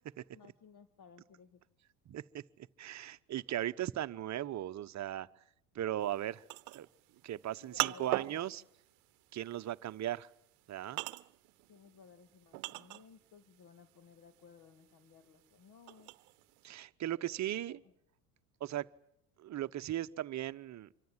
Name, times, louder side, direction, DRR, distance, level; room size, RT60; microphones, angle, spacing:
voice 1, 0.3-1.6 7.6-8.5 11.7-16.1 17.1-17.9, left 6 dB, 45° left, 9 dB, 2.2 m, -58 dB
voice 2, 2.1-5.3 5.7-6.4 6.7-6.9 7.2-8.6 9.3-10.3 10.7-11.0 16.6-17.8 18.6-18.9 19.4-20.9, right 12 dB, 40° right, 13 dB, 1.0 m, -38 dB
sound 1, 6.1-13.4 13.7-16.6, right 22 dB, 70° right, 0.9 m, -40 dB
26.5 x 24.0 x 7.4 m, 0.76 s
hypercardioid pair, 75°, 45 cm